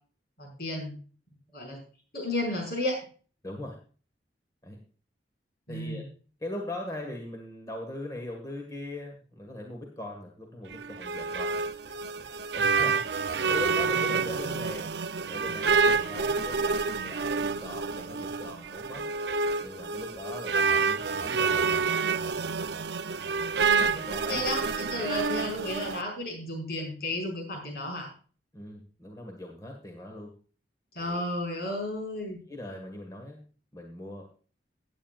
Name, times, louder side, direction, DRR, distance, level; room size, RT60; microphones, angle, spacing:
voice 1, 0.4-1.0 1.5-1.8 2.1-3.0 5.7-6.0 23.6-24.0 24.3-28.1 30.9-32.4, left 1 dB, 60° left, 1 dB, 5.4 m, -33 dB
voice 2, 3.4-3.7 4.6-4.8 5.7-6.0 6.4-14.9 15.3-19.0 19.6-21.8 23.9-24.4 28.5-30.3 31.0-31.3 31.6-31.8 32.5-33.4 33.7-34.3, left 1 dB, 20° left, 1 dB, 1.7 m, -40 dB
sound 1, 10.7-26.0, right 5 dB, 70° right, 0.6 m, -28 dB
17.0 x 9.0 x 2.4 m, 0.39 s
head